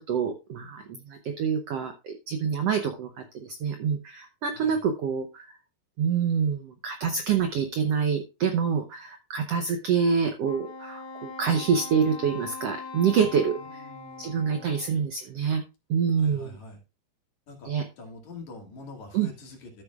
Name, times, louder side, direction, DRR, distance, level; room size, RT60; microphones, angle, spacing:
voice 1, 0.0-5.5 6.0-13.8 14.2-15.6 15.9-16.6 17.6-17.8 19.1-19.3, right 6 dB, 90° right, 6 dB, 1.3 m, -26 dB
Wind instrument woodwind instrument, 10.4-15.0, left 4 dB, 85° left, 3.1 m, -41 dB
voice 2, 13.6-15.1 16.2-16.8 17.5-17.7 18.0-19.8, left 2 dB, 55° left, 1 dB, 3.4 m, -45 dB
13.5 x 8.3 x 2.4 m, 0.28 s
omnidirectional pair, 4.1 m